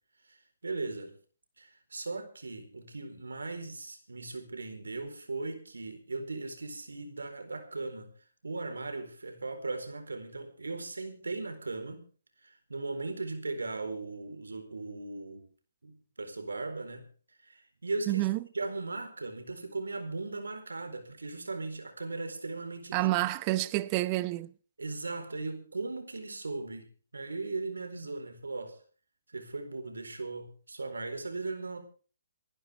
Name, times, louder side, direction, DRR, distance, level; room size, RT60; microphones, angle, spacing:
voice 1, 0.3-1.2 1.6-8.1 8.4-12.0 12.4-15.4 15.8-17.1 17.4-18.3 18.5-23.1 24.8-28.8 29.3-31.8, right 3 dB, 85° right, 4.2 m, -38 dB
voice 2, 18.1-18.4 22.9-24.5, right 18 dB, 25° right, 0.8 m, -28 dB
27.5 x 11.0 x 3.6 m
hypercardioid pair, 150°, 0 cm